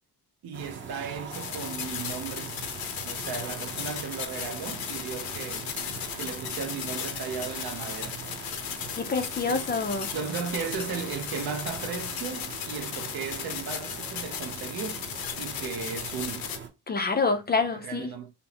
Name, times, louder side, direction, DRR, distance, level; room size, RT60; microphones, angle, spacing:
voice 1, 0.4-2.6 3.0-5.7 6.2-8.2 9.4-9.7 10.1-15.0 15.4-16.5 17.7-18.3, right 6 dB, 65° right, 0.8 m, -36 dB
sound 1, 0.5-16.7, right 5 dB, 30° right, 0.8 m, -42 dB
sound 2, 1.3-16.6, left 8 dB, 65° left, 0.8 m, -36 dB
voice 2, 9.0-10.1 16.9-18.1, left 4 dB, 25° left, 0.5 m, -27 dB
5.5 x 2.0 x 2.9 m
cardioid pair, 150°, 38 cm